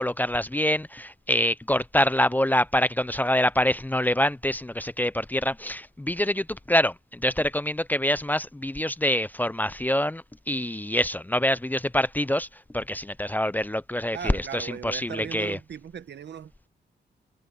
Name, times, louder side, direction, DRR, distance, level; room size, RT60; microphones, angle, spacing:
voice 1, 0.0-12.5 12.7-15.6, left 1 dB, 10° left, 0.5 m, -25 dB
voice 2, 14.1-16.7, right 8 dB, 80° right, 1.3 m, -38 dB
wide cardioid pair, 120°, 18 cm